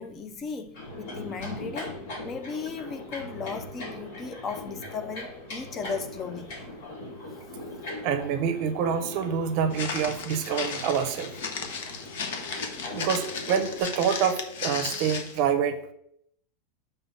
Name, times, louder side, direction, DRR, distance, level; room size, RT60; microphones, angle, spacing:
voice 1, 0.0-2.0 2.2-6.6, left 5 dB, 20° left, 0.4 m, -36 dB
sound 1, 0.7-13.8, left 1 dB, 60° left, 2.2 m, -40 dB
voice 2, 8.0-11.3 12.9-15.8, right 7 dB, 40° right, 0.6 m, -26 dB
Walk footsteps, 9.7-15.4, left 5 dB, 75° left, 0.9 m, -35 dB
5.6 x 3.4 x 5.8 m
supercardioid pair, 175°, 0 cm